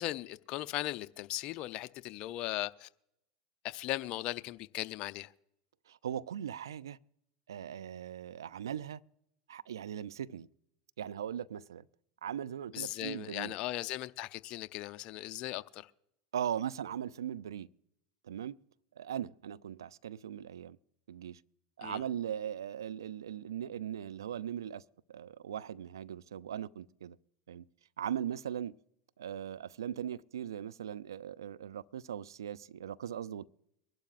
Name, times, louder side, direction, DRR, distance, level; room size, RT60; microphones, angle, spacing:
voice 1, 0.0-2.9 3.6-5.3 12.7-15.9 21.8-22.0, left 15 dB, 50° left, 0.6 m, -38 dB
voice 2, 5.9-7.0 7.5-9.0 9.5-10.5 11.0-11.8 12.2-13.6 16.3-17.7 18.2-18.6 19.0-20.8 21.1-21.4 21.8-24.8 25.1-27.2 27.5-27.6 28.0-28.8 29.2-33.5, right 9 dB, 80° right, 0.4 m, -39 dB
23.5 x 11.5 x 2.5 m
hypercardioid pair, 90°, 2 cm